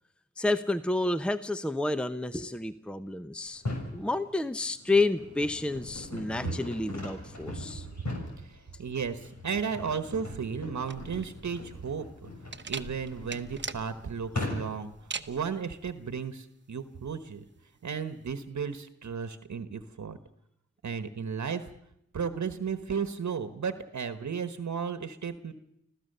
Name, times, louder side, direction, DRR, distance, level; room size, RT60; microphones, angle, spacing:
voice 1, 0.4-3.6 3.9-7.9, left 2 dB, 5° left, 11 dB, 0.9 m, -30 dB
sound 1, 3.5-4.0 4.6-15.0, left 2 dB, 70° left, 6.6 m, -40 dB
voice 2, 8.4-12.1 12.7-14.9 15.3-17.4 17.8-20.2 20.8-21.7 22.1-25.5, right 6 dB, 70° right, 10 dB, 1.3 m, -34 dB
sound 2, 10.9-18.4, right 4 dB, 40° right, 1.1 m, -42 dB
25.5 x 15.5 x 6.8 m, 0.77 s
cardioid pair, 45°, 30 cm